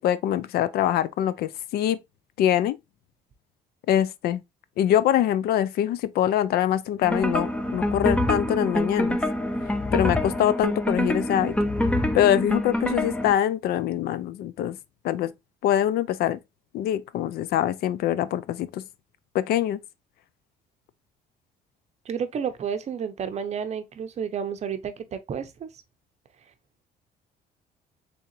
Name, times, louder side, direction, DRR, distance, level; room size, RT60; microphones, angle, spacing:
voice 1, 0.0-2.0 2.4-2.8 3.9-4.4 4.8-9.2 9.9-11.6 12.1-14.8 15.0-15.3 15.6-16.4 16.7-18.8 19.3-19.8, left 11 dB, 65° left, 0.4 m, -24 dB
sound 1, 7.0-13.3, left 1 dB, 5° left, 0.5 m, -26 dB
voice 2, 22.1-25.7, right 7 dB, 40° right, 0.6 m, -31 dB
3.7 x 3.5 x 2.9 m
cardioid pair, 110°, 17 cm